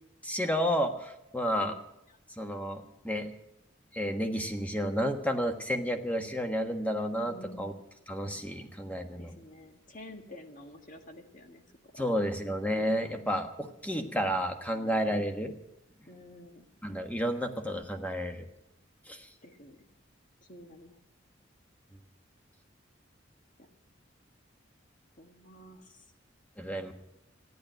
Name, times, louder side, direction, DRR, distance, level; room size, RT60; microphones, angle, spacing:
voice 1, 0.2-1.7 2.4-3.3 3.9-7.7 8.1-9.3 12.0-15.5 16.8-18.4 19.1-19.3 26.6-26.9, equal, 10° left, 5 dB, 1.3 m, -31 dB
voice 2, 7.2-7.8 9.2-12.1 15.0-15.3 16.1-16.7 19.4-19.8 20.5-21.0 25.2-26.0, left 1 dB, 40° left, 5 dB, 1.7 m, -50 dB
14.0 x 10.5 x 9.2 m, 0.85 s
head